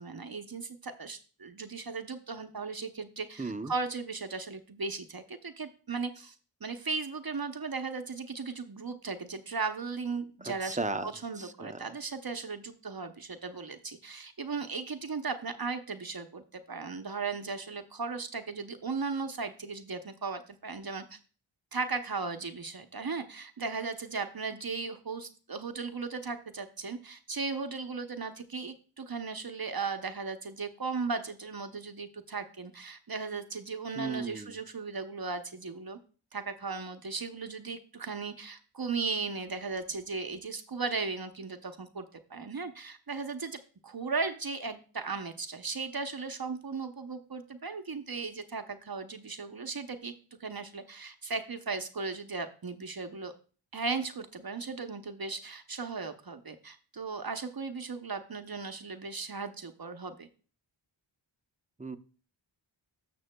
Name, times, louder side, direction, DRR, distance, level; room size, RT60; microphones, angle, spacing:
voice 1, 0.0-6.3 6.6-21.2 21.7-36.0 36.3-50.1 50.4-53.3 53.7-60.3, right 4 dB, 45° right, 7 dB, 0.8 m, -37 dB
voice 2, 3.4-3.7 10.4-11.1 11.4-11.8 34.0-34.5 61.8-62.0, right 3 dB, 15° right, 9 dB, 0.5 m, -35 dB
12.5 x 6.8 x 2.2 m, 0.38 s
wide cardioid pair, 65°, 49 cm